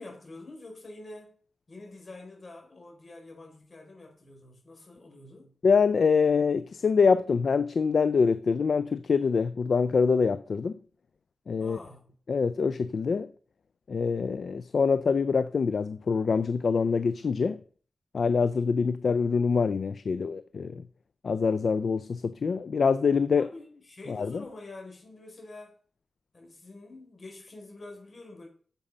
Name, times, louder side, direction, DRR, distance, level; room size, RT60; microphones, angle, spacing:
voice 1, 0.0-1.4 1.7-5.6 11.6-12.1 23.3-25.8 26.3-28.5, left 2 dB, 45° left, 4.6 m, -46 dB
voice 2, 5.6-10.8 11.5-11.8 12.3-13.3 13.9-17.6 18.1-20.8 21.2-23.5 24.1-24.4, left 5 dB, 65° left, 0.5 m, -25 dB
8.9 x 7.3 x 5.4 m
wide cardioid pair, 105°, 0 cm